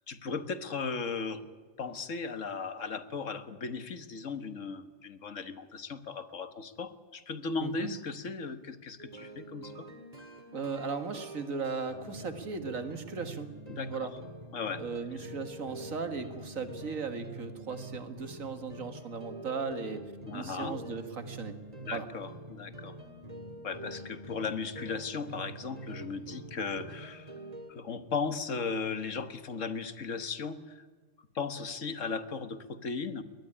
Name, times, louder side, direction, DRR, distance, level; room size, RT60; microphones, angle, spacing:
voice 1, 0.1-1.4 1.8-9.9 13.7-13.9 14.5-14.8 20.3-20.8 21.8-22.9 23.6-27.3 27.7-30.8 31.4-33.2, left 4 dB, 70° left, 11 dB, 1.8 m, -36 dB
voice 2, 7.6-7.9 10.5-13.5 13.9-14.1 14.8-20.0 20.3-21.6 21.9-22.1, right 5 dB, 90° right, 8 dB, 2.2 m, -37 dB
sound 1, 9.0-27.7, right 1 dB, 30° right, 2.5 m, -46 dB
22.0 x 19.5 x 10.0 m, 1.5 s
omnidirectional pair, 1.4 m